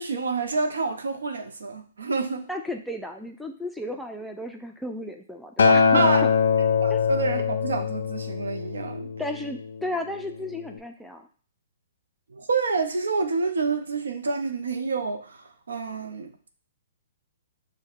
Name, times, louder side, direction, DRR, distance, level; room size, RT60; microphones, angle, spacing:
voice 1, 0.0-2.5 5.9-6.2 6.8-9.1 12.3-16.3, right 4 dB, 80° right, 6 dB, 0.6 m, -28 dB
voice 2, 2.5-6.3 6.9-7.0 9.2-11.3, left 1 dB, ahead, 3 dB, 0.4 m, -34 dB
Acoustic guitar, 5.6-9.9 10.7-10.8, left 5 dB, 75° left, 0.4 m, -22 dB
6.3 x 2.1 x 2.4 m, 0.43 s
hypercardioid pair, 130°, 0 cm